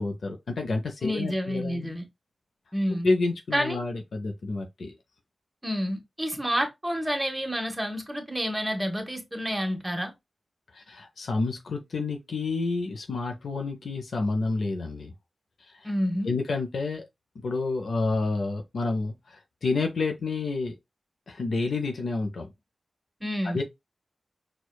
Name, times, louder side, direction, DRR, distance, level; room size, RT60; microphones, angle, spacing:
voice 1, 0.0-1.9 3.0-5.0 10.7-15.1 15.7-15.9 16.2-17.0 17.4-20.7 21.3-22.5 23.5-23.6, left 3 dB, 85° left, 0.4 m, -29 dB
voice 2, 1.0-2.0 2.7-3.1 3.5-3.8 5.6-10.1 15.8-16.3 23.2-23.6, equal, 10° right, 0.9 m, -29 dB
4.5 x 2.2 x 2.2 m
wide cardioid pair, 65°, 0 cm